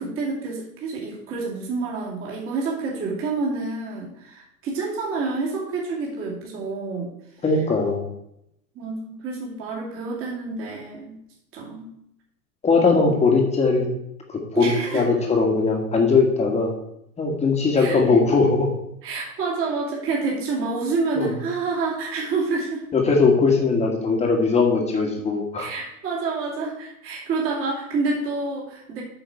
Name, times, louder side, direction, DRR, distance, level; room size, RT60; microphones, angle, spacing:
voice 1, 0.0-7.1 8.7-11.2 11.5-11.9 14.6-15.0 17.7-18.0 19.0-22.8 25.6-29.0, right 3 dB, 30° right, -4 dB, 2.5 m, -28 dB
voice 2, 7.4-8.0 12.6-13.9 14.3-16.7 17.2-18.7 21.2-21.3 22.9-25.7, left 4 dB, 15° left, 1 dB, 1.7 m, -20 dB
8.7 x 5.7 x 4.6 m, 0.79 s
figure-of-eight pair, 95°, 44 cm